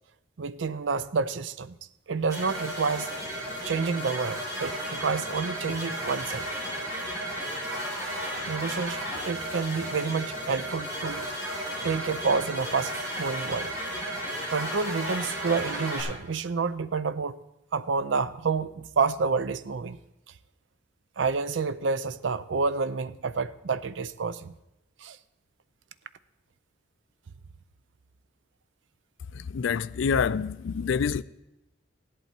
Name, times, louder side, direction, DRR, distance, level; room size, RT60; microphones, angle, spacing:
voice 1, 0.4-1.7 2.1-3.1 3.6-6.5 8.5-11.3 11.8-13.7 14.5-17.4 17.7-20.0 21.2-24.5 25.0-25.2, right 4 dB, 70° right, 0.5 m, -29 dB
sound 1, 2.3-16.0, equal, 20° right, 6.1 m, -34 dB
voice 2, 29.5-31.2, left 6 dB, 75° left, 0.4 m, -26 dB
16.0 x 11.0 x 4.4 m
head